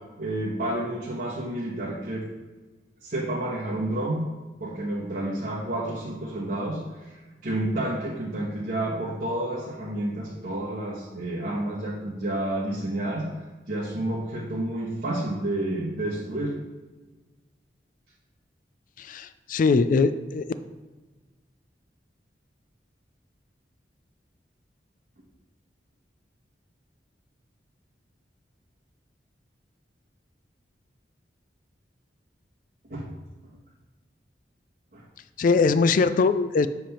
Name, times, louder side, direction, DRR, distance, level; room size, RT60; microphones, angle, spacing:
voice 1, 0.2-2.2 3.0-4.3 4.6-7.2 7.4-13.2 13.7-16.6 32.9-33.1 34.9-35.0, right 1 dB, 55° right, -7 dB, 1.3 m, -30 dB
voice 2, 19.0-20.5 35.4-36.7, left 4 dB, 50° left, 12 dB, 0.3 m, -21 dB
7.6 x 3.4 x 5.7 m, 1.3 s
head